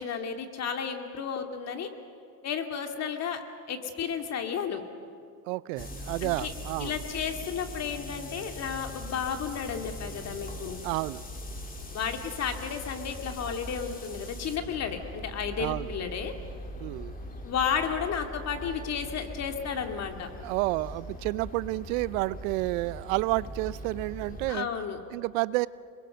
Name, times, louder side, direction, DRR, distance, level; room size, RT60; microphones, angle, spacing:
voice 1, 0.0-1.9 2.4-3.4 3.7-4.8 6.2-6.5 6.8-10.9 11.9-16.3 17.4-20.3 24.5-25.0, left 7 dB, 40° left, 5 dB, 2.4 m, -32 dB
voice 2, 5.5-6.9 10.8-11.2 15.6-15.9 16.8-17.1 20.4-24.7 25.1-25.7, right 20 dB, 70° right, 19 dB, 0.6 m, -30 dB
sound 1, 5.8-24.5, left 1 dB, 20° left, 2.3 m, -41 dB
27.5 x 21.5 x 6.8 m, 2.4 s
supercardioid pair, 110°, 42 cm